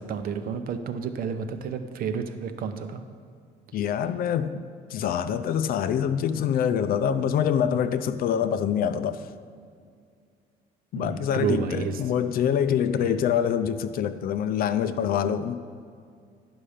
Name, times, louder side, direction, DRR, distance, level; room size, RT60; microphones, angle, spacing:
voice 1, 0.0-3.0 10.9-12.0 13.0-13.2, right 6 dB, 60° right, 8 dB, 0.7 m, -30 dB
voice 2, 3.7-4.6 4.9-9.2 10.9-15.7, left 8 dB, 60° left, 11 dB, 0.5 m, -25 dB
10.0 x 5.6 x 5.0 m, 2.2 s
cardioid pair, 110°, 17 cm